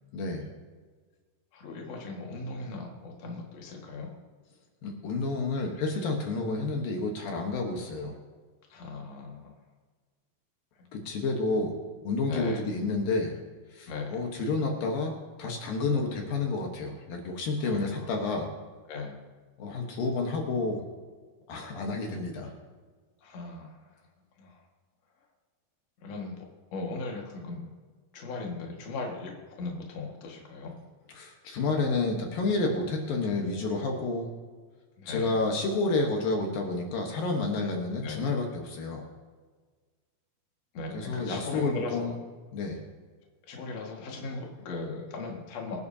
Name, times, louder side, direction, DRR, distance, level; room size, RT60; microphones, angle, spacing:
voice 1, 0.1-0.5 4.8-8.1 10.9-11.8 12.0-13.4 13.7-18.5 19.6-20.8 21.5-22.5 31.1-34.3 35.1-39.1 40.9-42.2 42.5-42.8, left 3 dB, 75° left, 2 dB, 3.0 m, -30 dB
voice 2, 1.5-4.1 8.7-9.5 12.3-12.6 13.9-14.2 17.6-18.1 18.9-19.2 23.2-23.9 24.4-24.6 26.0-26.5 26.7-27.7 28.1-30.7 35.0-35.4 38.0-38.2 40.7-42.1 43.5-45.8, left 3 dB, 50° left, 0 dB, 2.7 m, -38 dB
24.5 x 10.5 x 2.8 m, 1.5 s
omnidirectional pair, 4.2 m